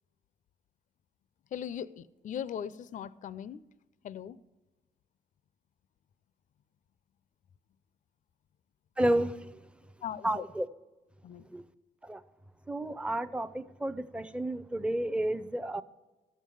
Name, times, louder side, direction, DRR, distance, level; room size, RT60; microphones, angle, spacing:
voice 1, 1.5-3.6 4.0-4.4 10.0-10.4 11.2-11.5, left 9 dB, 55° left, 0.5 m, -39 dB
voice 2, 9.0-9.3 10.2-10.7 11.5-11.6 12.1-12.2 12.7-15.8, right 1 dB, 5° right, 0.7 m, -31 dB
13.0 x 7.4 x 8.5 m
cardioid pair, 95°, 16 cm